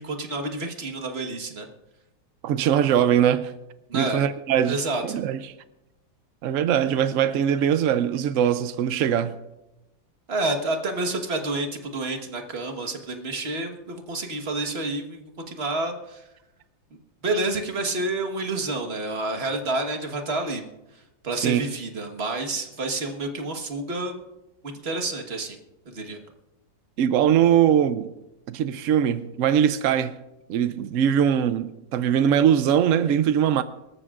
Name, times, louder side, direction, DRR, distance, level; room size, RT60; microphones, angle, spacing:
voice 1, 0.0-1.7 3.9-4.2 4.6-5.0 10.3-16.2 17.2-20.6 20.9-24.1 24.6-25.6 25.8-26.2, right 2 dB, 35° right, 1.5 m, -29 dB
voice 2, 2.4-3.5 3.9-5.4 6.4-9.4 21.4-21.6 27.0-28.1 28.5-30.2 30.5-33.6, right 9 dB, 90° right, 0.7 m, -21 dB
24.5 x 13.5 x 2.5 m
omnidirectional pair, 2.0 m